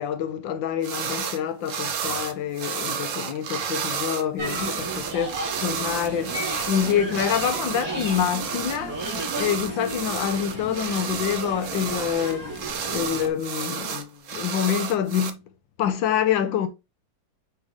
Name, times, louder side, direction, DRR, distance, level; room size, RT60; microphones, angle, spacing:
voice 1, 0.0-12.6 12.9-15.4 15.8-16.7, left 9 dB, 85° left, 1.5 m, -26 dB
sound 1, 0.8-1.4 1.7-15.3, right 7 dB, 55° right, 1.0 m, -31 dB
sound 2, 4.4-13.3, right 1 dB, 85° right, 3.7 m, -34 dB
9.2 x 3.7 x 3.2 m
omnidirectional pair, 2.1 m